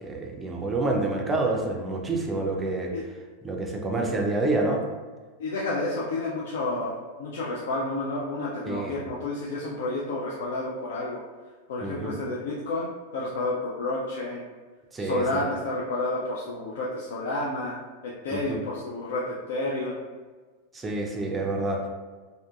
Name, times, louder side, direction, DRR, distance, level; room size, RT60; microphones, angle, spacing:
voice 1, 0.0-2.9 3.4-4.8 8.6-8.9 11.8-12.1 14.9-15.4 18.3-18.6 20.7-21.9, right 2 dB, 15° right, 1 dB, 0.4 m, -28 dB
voice 2, 5.4-6.9 7.2-11.2 11.7-14.4 15.0-20.0, left 2 dB, 60° left, -5 dB, 0.4 m, -30 dB
2.6 x 2.5 x 2.2 m, 1.4 s
figure-of-eight pair, 90°, 0 cm